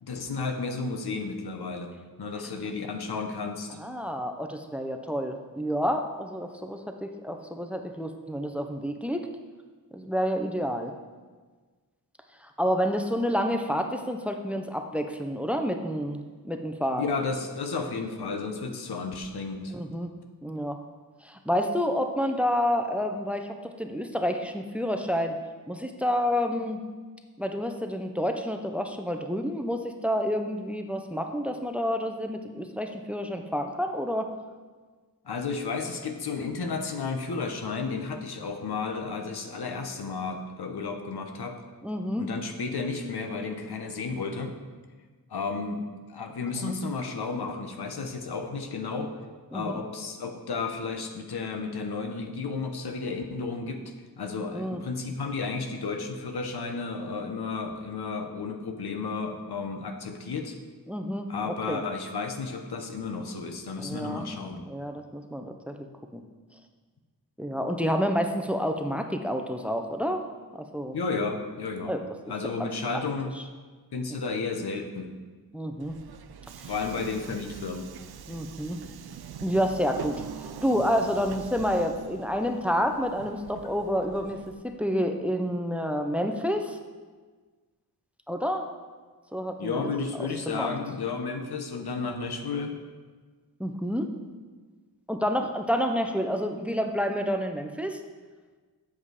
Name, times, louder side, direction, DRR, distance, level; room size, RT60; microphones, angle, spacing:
voice 1, 0.0-3.8 16.9-19.7 35.2-41.6 42.2-44.6 45.3-49.1 49.5-53.8 54.2-60.6 61.3-64.7 70.9-71.9 72.3-73.3 73.9-75.1 76.7-77.9 89.6-92.7, left 4 dB, 85° left, 5 dB, 1.0 m, -32 dB
voice 2, 3.8-9.3 9.9-10.9 12.6-17.1 19.7-20.1 20.4-20.8 21.2-25.4 25.7-26.8 27.4-34.3 41.8-42.2 46.7-46.8 49.5-49.7 54.5-54.8 60.9-61.8 63.8-64.3 64.7-66.2 67.4-70.2 70.6-71.0 71.8-72.0 72.4-72.7 75.5-75.9 76.6-76.7 78.3-78.8 79.4-80.2 80.6-84.4 84.6-86.8 88.3-88.7 89.3-89.8 90.5-90.7 93.6-94.1 95.1-98.0, equal, 5° right, 5 dB, 0.7 m, -29 dB
Subway metro underground, 75.8-84.5, right 7 dB, 75° right, 0.6 m, -43 dB
7.9 x 7.2 x 4.9 m, 1.4 s
wide cardioid pair, 75°, 38 cm